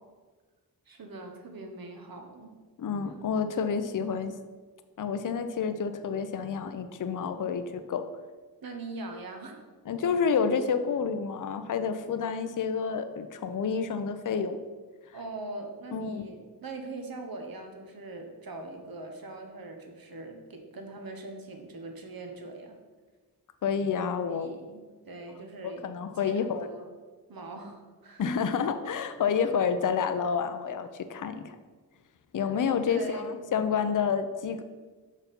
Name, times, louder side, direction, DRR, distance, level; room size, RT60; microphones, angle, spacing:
voice 1, 0.9-2.6 8.6-9.6 15.1-22.8 24.2-26.9 27.3-28.2 32.4-32.5 32.9-33.3, right 2 dB, 65° right, 4 dB, 1.0 m, -42 dB
voice 2, 2.8-4.3 5.0-8.1 9.9-14.6 15.9-16.2 23.6-24.5 25.8-26.7 28.2-31.6 32.3-34.6, left 6 dB, 55° left, 9 dB, 0.5 m, -29 dB
5.7 x 4.7 x 5.2 m, 1.4 s
wide cardioid pair, 85°, 39 cm